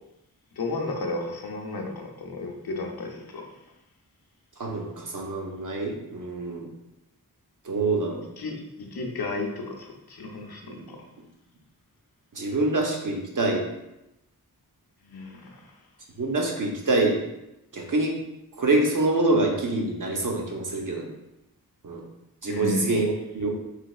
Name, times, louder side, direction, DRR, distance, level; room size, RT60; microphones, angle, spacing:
voice 1, 0.5-3.5 8.4-11.0 15.0-15.7 22.5-22.9, left 2 dB, 80° left, 1 dB, 0.6 m, -33 dB
voice 2, 4.6-6.7 7.6-8.2 10.7-10.9 12.3-13.6 16.2-17.2 17.7-18.1 18.6-21.1 21.8-22.0 22.4-23.5, right 2 dB, 60° right, 0 dB, 0.7 m, -25 dB
3.3 x 3.0 x 2.3 m, 0.91 s
wide cardioid pair, 65°, 36 cm